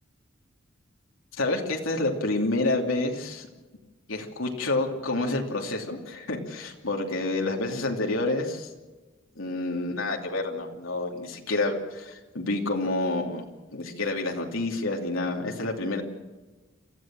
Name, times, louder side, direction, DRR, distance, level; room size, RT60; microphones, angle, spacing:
voice 1, 1.4-3.5 4.1-8.7 9.4-16.0, left 2 dB, 80° left, 1 dB, 2.9 m, -28 dB
29.0 x 14.5 x 7.5 m, 1.2 s
head